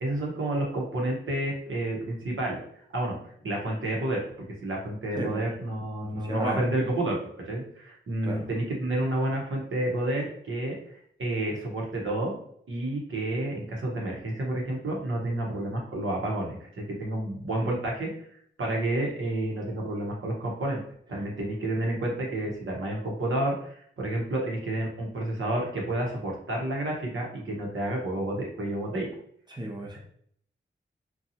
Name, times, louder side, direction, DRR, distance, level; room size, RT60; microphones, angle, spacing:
voice 1, 0.0-2.6 2.9-3.2 3.4-7.2 7.4-10.8 11.2-12.4 12.7-18.1 18.6-20.8 21.1-29.1 29.9-30.0, right 1 dB, 80° right, -2 dB, 0.9 m, -30 dB
voice 2, 6.0-6.6 8.2-8.5 29.5-30.0, right 1 dB, 20° right, 0 dB, 0.7 m, -34 dB
2.7 x 2.3 x 2.8 m, 0.65 s
cardioid pair, 60°, 20 cm